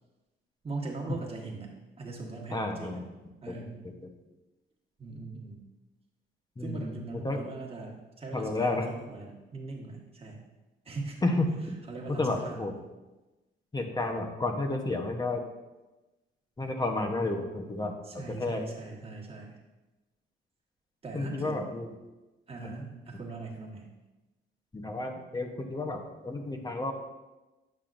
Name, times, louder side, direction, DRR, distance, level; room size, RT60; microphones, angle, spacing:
voice 1, 0.6-3.0 3.4-3.8 5.0-5.6 6.6-10.4 10.8-11.2 11.9-12.6 18.0-19.5 21.0-21.6 22.5-23.9, right 3 dB, 30° right, -1 dB, 1.5 m, -40 dB
voice 2, 2.5-3.0 3.5-3.6 6.6-6.9 7.1-7.4 8.3-8.9 11.2-11.8 12.1-12.7 13.7-15.4 16.6-18.6 21.1-21.9 22.6-22.7 24.7-26.9, left 2 dB, 20° left, 4 dB, 0.9 m, -31 dB
8.7 x 5.6 x 2.6 m, 1.1 s
cardioid pair, 90°, 20 cm